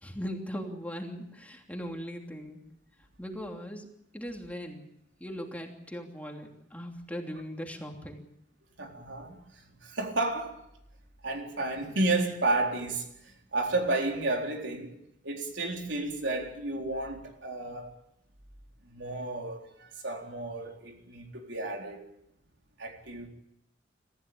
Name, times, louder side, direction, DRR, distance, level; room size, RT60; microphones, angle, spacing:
voice 1, 0.0-2.6 3.2-3.9 4.1-4.9 5.2-8.2, equal, 10° left, 3.0 m, -39 dB
voice 2, 8.8-10.6 11.2-15.0 15.2-17.9 18.8-22.0 22.8-23.3, right 2 dB, 75° right, 4.1 m, -32 dB
25.0 x 15.0 x 8.7 m
head